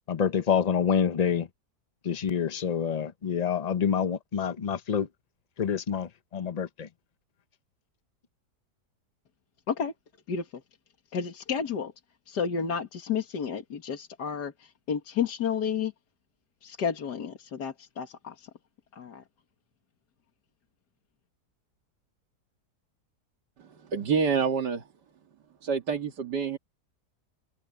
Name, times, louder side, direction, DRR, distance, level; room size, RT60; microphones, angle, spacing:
voice 1, 0.1-1.5 2.0-5.1 5.6-6.9, left 7 dB, 40° left, 0.6 m, -27 dB
voice 2, 11.1-11.9 12.3-15.9 16.6-18.5 18.9-19.2, left 7 dB, 80° left, 2.3 m, -31 dB
voice 3, 23.6-24.9 25.6-26.6, right 6 dB, 85° right, 2.4 m, -28 dB
omnidirectional pair, 1.8 m